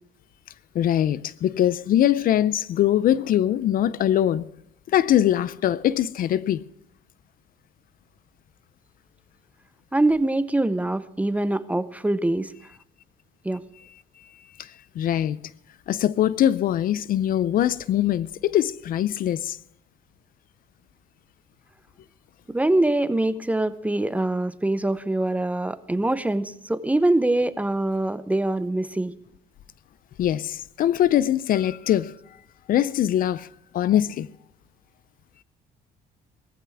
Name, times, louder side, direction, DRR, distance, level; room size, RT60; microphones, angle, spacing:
voice 1, 0.7-4.5 4.9-6.6 14.6-14.7 15.0-15.4 15.9-19.6 30.2-32.1 32.7-33.5 33.7-34.3, left 11 dB, 55° left, 0.5 m, -22 dB
voice 2, 9.9-12.5 13.4-13.6 22.5-29.1, right 2 dB, 10° right, 0.7 m, -24 dB
19.5 x 14.5 x 3.5 m
cardioid pair, 110°, 17 cm